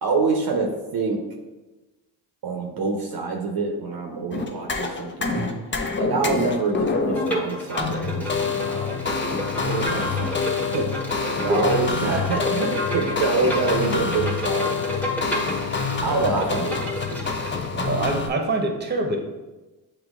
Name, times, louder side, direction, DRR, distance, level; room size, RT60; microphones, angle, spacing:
voice 1, 0.0-1.2 2.4-5.4 6.0-9.0 9.6-10.4 10.7-10.9 11.4-17.2 17.7-18.1, right 3 dB, 45° right, 1 dB, 0.8 m, -26 dB
sound 1, 4.3-18.3, left 5 dB, 25° left, 0.5 m, -27 dB
Bowed string instrument, 7.1-17.7, equal, 5° left, 1.1 m, -31 dB
voice 2, 17.9-19.2, right 2 dB, 20° right, 3 dB, 0.9 m, -24 dB
7.2 x 2.9 x 2.4 m, 1.1 s
supercardioid pair, 55°, 48 cm